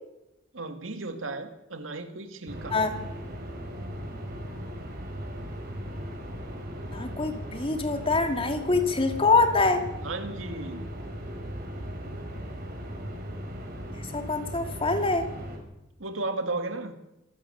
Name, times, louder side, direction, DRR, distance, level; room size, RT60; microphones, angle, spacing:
voice 1, 0.5-2.8 10.0-10.8 16.0-16.9, right 2 dB, 85° right, 8 dB, 2.3 m, -34 dB
sound 1, 2.5-15.6, equal, 55° right, 5.0 m, -37 dB
voice 2, 6.8-9.8 14.1-15.3, left 3 dB, 30° left, 6 dB, 2.7 m, -25 dB
26.0 x 12.5 x 8.2 m, 0.90 s
head